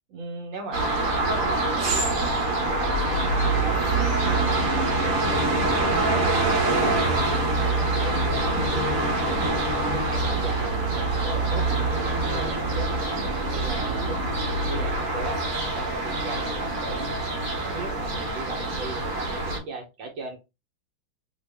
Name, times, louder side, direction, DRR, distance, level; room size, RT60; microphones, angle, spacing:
voice 1, 0.1-0.8 1.1-3.9 4.3-7.1 7.6-8.3 9.2-17.2 17.7-20.4, right 2 dB, 70° right, 2 dB, 1.4 m, -37 dB
sound 1, 0.7-19.6, right 2 dB, 50° right, 1.1 m, -25 dB
2.9 x 2.7 x 3.2 m, 0.26 s
omnidirectional pair, 2.2 m